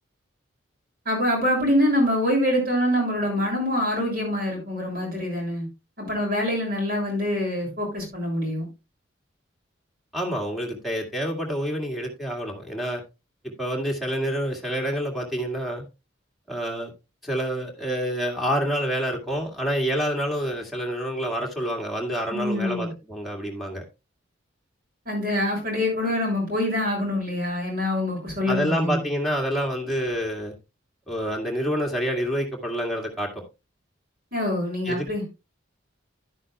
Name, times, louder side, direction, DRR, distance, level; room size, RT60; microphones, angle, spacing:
voice 1, 1.0-5.7 6.0-8.7 22.3-22.9 25.0-29.0 34.3-35.2, left 1 dB, 50° right, 0 dB, 6.7 m, -25 dB
voice 2, 10.1-13.0 13.4-15.8 16.5-16.9 17.2-23.8 28.5-30.5 31.1-33.3 34.8-35.1, equal, ahead, -1 dB, 1.9 m, -27 dB
11.5 x 9.8 x 2.3 m, 0.26 s
head